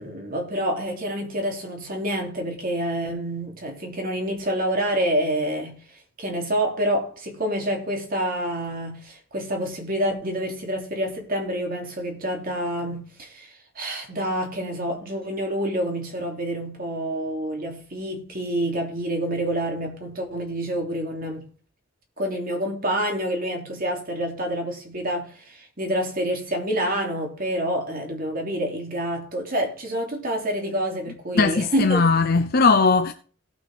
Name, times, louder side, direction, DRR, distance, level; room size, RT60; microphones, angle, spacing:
voice 1, 0.0-21.4 22.2-32.0, equal, 45° right, 3.0 m, -27 dB
voice 2, 31.3-33.1, left 4 dB, 50° left, 0.7 m, -19 dB
17.5 x 6.5 x 3.6 m
head